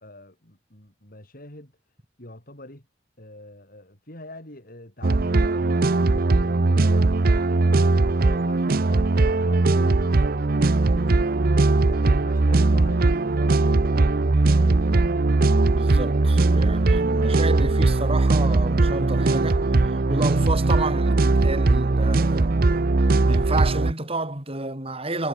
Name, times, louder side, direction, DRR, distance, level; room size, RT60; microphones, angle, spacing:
voice 1, 0.0-1.7 2.2-2.9 3.2-7.2 7.6-10.8 11.8-14.8, left 1 dB, 50° left, 5.5 m, -43 dB
sound 1, 5.0-23.9, right 2 dB, 50° right, 0.7 m, -20 dB
voice 2, 15.6-22.6 23.2-25.3, right 2 dB, 30° right, 4.2 m, -30 dB
head